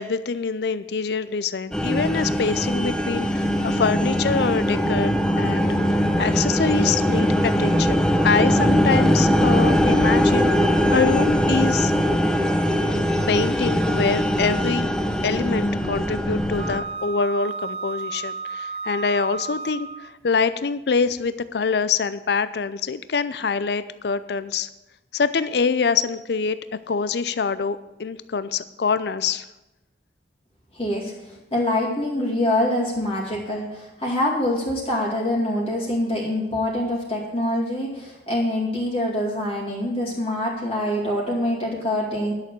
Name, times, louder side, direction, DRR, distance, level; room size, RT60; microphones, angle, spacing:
voice 1, 0.0-5.8 6.2-11.9 13.3-14.9 15.2-24.7 25.1-26.6 26.9-29.5, left 5 dB, 65° left, 14 dB, 0.5 m, -25 dB
sound 1, 1.7-16.8, equal, 5° left, 0.8 m, -21 dB
Wind instrument woodwind instrument, 16.6-20.2, right 4 dB, 35° right, 0.4 m, -32 dB
voice 2, 30.7-31.1 31.5-42.3, left 1 dB, 35° left, -4 dB, 2.3 m, -25 dB
11.0 x 6.7 x 7.5 m, 0.98 s
head